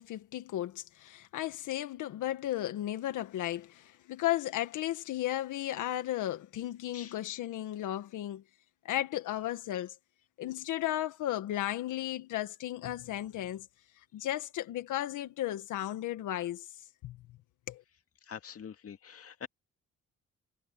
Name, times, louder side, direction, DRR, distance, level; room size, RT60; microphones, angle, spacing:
voice 1, 0.0-8.4 8.8-9.9 10.4-13.7 14.1-16.7 17.0-17.2 17.7-17.8, left 13 dB, 85° left, 1.7 m, -34 dB
voice 2, 18.2-19.5, left 7 dB, 50° left, 2.1 m, -45 dB
cardioid pair, 90°, 30 cm